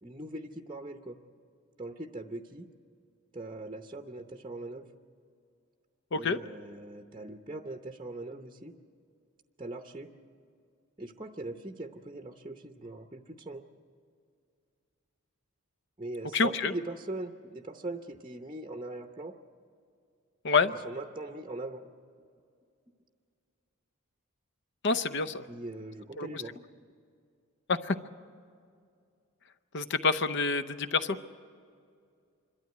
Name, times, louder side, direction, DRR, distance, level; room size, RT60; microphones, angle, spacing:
voice 1, 0.0-1.2 1.8-2.7 3.3-4.9 6.1-8.7 9.6-10.1 11.0-13.7 16.0-19.3 20.8-21.9 25.5-26.6, right 2 dB, 20° right, 4 dB, 0.7 m, -41 dB
voice 2, 16.3-16.7 20.4-20.7 24.8-25.4 26.2-26.4 27.7-28.0 29.7-31.2, left 4 dB, 55° left, 12 dB, 0.7 m, -27 dB
27.0 x 12.5 x 9.3 m, 2.3 s
head